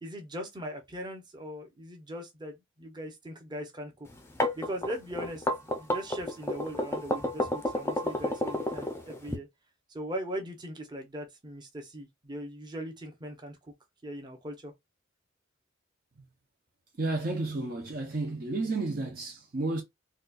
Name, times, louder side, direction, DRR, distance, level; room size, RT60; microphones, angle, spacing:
voice 1, 0.0-4.1 4.5-5.4 5.8-9.5 9.9-13.6 14.0-14.7, equal, 20° right, 0.8 m, -39 dB
sound 1, 4.1-9.4, left 1 dB, 10° left, 0.5 m, -30 dB
voice 2, 17.0-19.8, right 2 dB, 45° right, 0.6 m, -31 dB
4.0 x 2.3 x 2.4 m
head